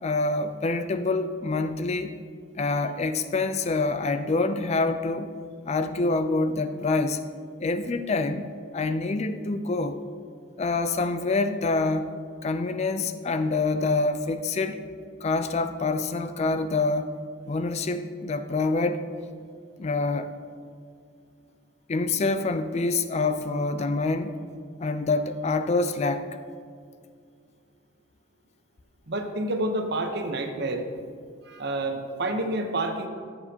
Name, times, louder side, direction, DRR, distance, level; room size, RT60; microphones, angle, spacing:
voice 1, 0.0-2.1 2.6-5.3 5.7-7.2 7.6-8.5 8.7-10.0 10.6-12.1 12.4-14.8 15.2-17.1 17.5-19.0 19.8-20.3 21.9-24.4 24.8-26.3, left 3 dB, 35° left, 10 dB, 0.4 m, -26 dB
voice 2, 29.1-30.9 31.4-33.1, right 2 dB, 55° right, 6 dB, 0.9 m, -28 dB
16.0 x 7.2 x 2.9 m, 2.2 s
head